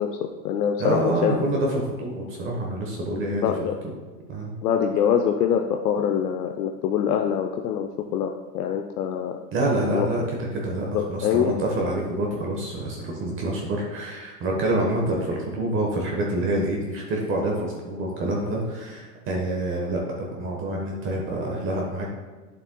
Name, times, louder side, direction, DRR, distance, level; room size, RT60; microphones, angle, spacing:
voice 1, 0.0-1.5 3.4-3.8 4.6-9.4 9.9-10.3 10.9-11.6, left 8 dB, 75° left, 4 dB, 0.7 m, -24 dB
voice 2, 0.8-3.7 4.3-4.5 9.5-22.1, right 1 dB, 25° right, -1 dB, 1.1 m, -27 dB
9.0 x 6.9 x 2.2 m, 1.4 s
hypercardioid pair, 130°, 48 cm